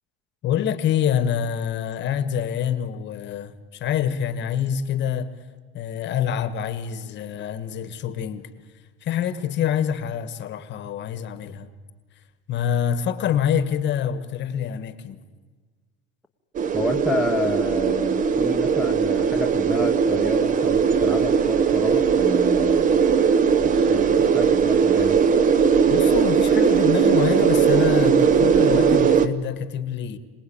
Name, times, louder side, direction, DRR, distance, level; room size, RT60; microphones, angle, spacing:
voice 1, 0.4-5.3 5.7-8.5 9.0-11.7 12.5-15.2 25.9-30.2, left 9 dB, 35° left, 1.4 m, -26 dB
sound 1, 16.5-29.3, right 6 dB, 25° right, 0.9 m, -19 dB
voice 2, 16.7-22.9 23.6-25.2, left 2 dB, ahead, 1.0 m, -30 dB
26.5 x 19.0 x 8.7 m
cardioid pair, 155°, 31 cm